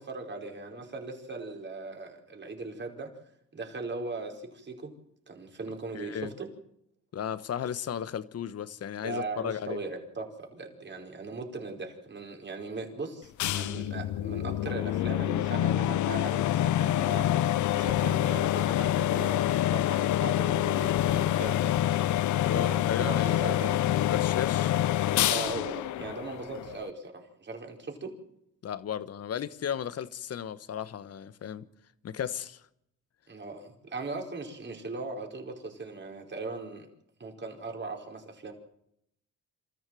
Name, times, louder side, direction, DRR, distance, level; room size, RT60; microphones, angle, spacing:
voice 1, 0.0-3.1 3.5-4.9 5.3-6.5 9.0-22.0 22.5-23.8 25.3-28.1 33.3-36.9 37.2-38.5, right 3 dB, 35° right, 4.7 m, -39 dB
voice 2, 5.9-6.3 7.1-9.8 22.4-24.8 28.6-31.6 32.0-32.6, left 9 dB, 55° left, 1.3 m, -35 dB
sound 1, 13.4-26.9, left 12 dB, 75° left, 0.8 m, -27 dB
26.5 x 14.5 x 7.8 m
cardioid pair, 90°, 30 cm